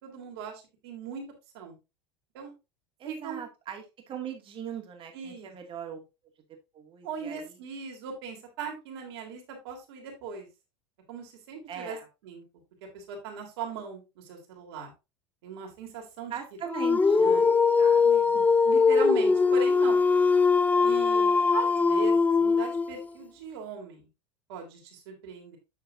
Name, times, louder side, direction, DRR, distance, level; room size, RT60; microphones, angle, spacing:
voice 1, 0.0-1.2 1.5-1.8 2.3-2.5 3.1-3.4 5.1-5.5 7.0-10.5 11.1-12.0 12.2-12.4 12.9-14.9 15.4-16.3 17.2-17.4 18.3-20.0 20.8-24.1 24.5-25.6, right 5 dB, 65° right, 2 dB, 3.0 m, -39 dB
voice 2, 3.0-6.0 6.7-7.6 11.7-12.1 16.3-17.5 17.8-18.3, right 8 dB, 40° right, 2 dB, 2.4 m, -40 dB
Dog, 16.7-23.1, left 5 dB, 10° left, 0.4 m, -22 dB
8.8 x 6.6 x 2.7 m, 0.26 s
hypercardioid pair, 80°, 14 cm